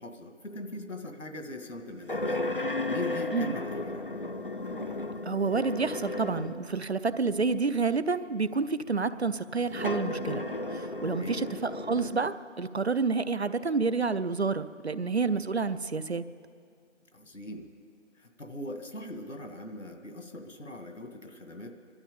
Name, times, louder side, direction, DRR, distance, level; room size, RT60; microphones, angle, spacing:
voice 1, 0.0-2.4 2.9-4.0 11.1-11.4 17.1-17.7 18.2-21.7, left 1 dB, 85° left, 5 dB, 1.9 m, -41 dB
sound 1, 2.1-6.7 7.5-7.6 9.7-12.3, left 2 dB, 45° left, 0.6 m, -34 dB
voice 2, 5.3-10.4 10.7-16.2, right 4 dB, 60° right, 14 dB, 0.6 m, -29 dB
21.5 x 12.0 x 5.2 m, 2.3 s
figure-of-eight pair, 170°, 37 cm